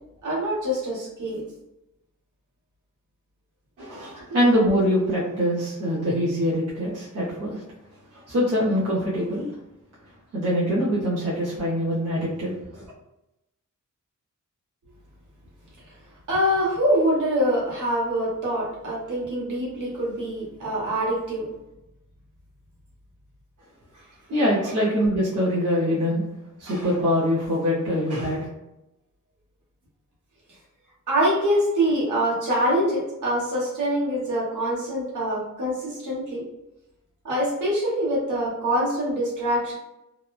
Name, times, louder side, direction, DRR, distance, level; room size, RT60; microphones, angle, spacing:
voice 1, 0.2-1.4 16.3-21.5 31.1-36.4 37.2-39.7, equal, 70° right, -6 dB, 1.1 m, -24 dB
voice 2, 3.8-7.6 8.1-9.5 10.3-12.9 24.3-26.2 26.6-28.5, equal, 50° right, -8 dB, 0.7 m, -24 dB
2.9 x 2.1 x 2.3 m, 0.92 s
wide cardioid pair, 170°, 31 cm